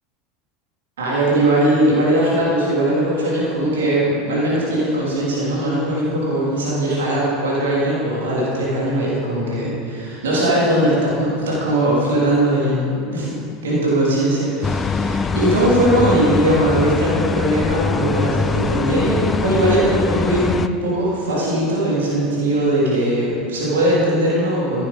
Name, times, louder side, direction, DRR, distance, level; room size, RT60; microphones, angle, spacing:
voice 1, 1.0-13.3 13.6-24.9, right 1 dB, 70° right, -6 dB, 3.0 m, -19 dB
sound 1, 14.6-20.7, left 4 dB, 20° left, 0.3 m, -22 dB
14.5 x 8.0 x 4.0 m, 2.5 s
figure-of-eight pair, 75°, 0 cm